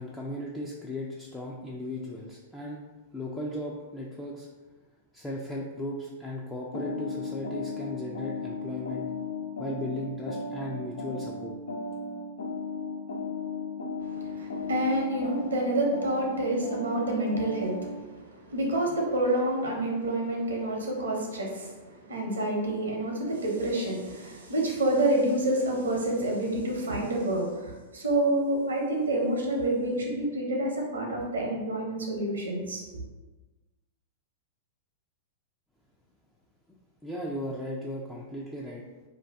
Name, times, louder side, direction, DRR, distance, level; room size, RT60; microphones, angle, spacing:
voice 1, 0.0-2.8 3.1-4.5 5.1-9.1 9.6-11.6 37.0-38.8, left 1 dB, 10° left, -4 dB, 0.4 m, -36 dB
sound 1, 6.7-18.0, left 3 dB, 75° left, 0.4 m, -36 dB
voice 2, 14.0-32.8, right 1 dB, 80° right, 0 dB, 0.7 m, -28 dB
2.6 x 2.2 x 3.3 m, 1.2 s
hypercardioid pair, 105°, 0 cm